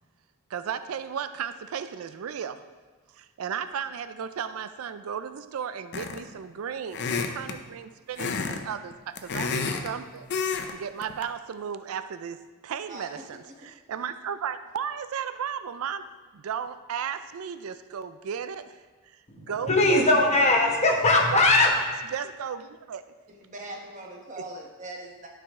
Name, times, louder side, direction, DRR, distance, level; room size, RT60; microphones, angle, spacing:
voice 1, 0.5-2.6 3.1-10.3 10.7-12.4 12.6-16.0 16.3-18.8 19.0-20.0 21.3-21.8 22.1-23.0, right 7 dB, 85° right, 11 dB, 0.4 m, -34 dB
sound 1, 5.9-6.3 6.9-7.6 8.2-8.6 8.9-9.9 10.3-10.7 11.0-11.2, left 5 dB, 55° left, 0.6 m, -29 dB
voice 2, 19.3-21.7, left 2 dB, 30° left, 0 dB, 1.1 m, -20 dB
voice 3, 23.3-25.3, right 2 dB, 35° right, 1 dB, 1.2 m, -41 dB
12.0 x 4.9 x 3.6 m, 1.3 s
head